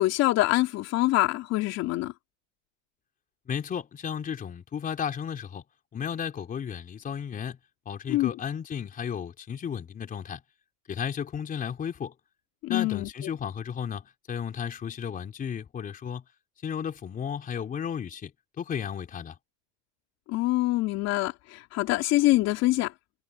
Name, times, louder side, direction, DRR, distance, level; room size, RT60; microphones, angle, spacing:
voice 1, 0.0-2.1 8.1-8.3 12.6-13.1 20.3-22.9, left 17 dB, 45° left, 3.4 m, -25 dB
voice 2, 3.5-5.6 5.9-7.6 7.9-10.4 10.9-12.1 12.7-16.2 16.6-18.3 18.6-19.4, left 8 dB, 25° left, 3.8 m, -34 dB
supercardioid pair, 140°, 35 cm